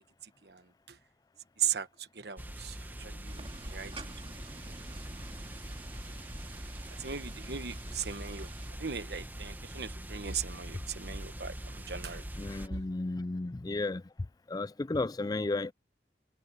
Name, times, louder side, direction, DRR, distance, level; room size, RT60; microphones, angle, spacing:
voice 1, 1.6-3.9 7.0-8.5 8.8-12.2 12.7-12.8, right 8 dB, 65° right, 1.2 m, -38 dB
sound 1, 2.4-12.7, right 1 dB, 10° right, 1.4 m, -43 dB
sound 2, 3.3-8.7, right 2 dB, 30° right, 2.3 m, -49 dB
voice 2, 12.4-14.0 14.5-15.7, left 2 dB, 20° left, 0.4 m, -33 dB
head